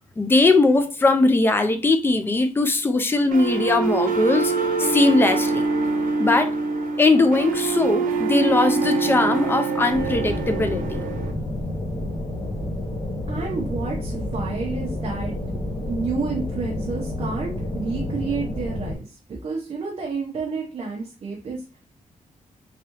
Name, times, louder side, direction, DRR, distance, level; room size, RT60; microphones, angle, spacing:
voice 1, 0.2-4.5 4.8-5.7 6.2-6.5 7.0-11.0, left 3 dB, 15° left, 0.4 m, -20 dB
sound 1, 3.3-11.3, right 4 dB, 85° right, 0.8 m, -24 dB
sound 2, 9.9-18.9, left 1 dB, 35° left, 0.8 m, -29 dB
voice 2, 13.3-15.4 15.9-21.8, right 4 dB, 45° right, 0.8 m, -30 dB
3.5 x 3.3 x 2.9 m
wide cardioid pair, 175°, 14 cm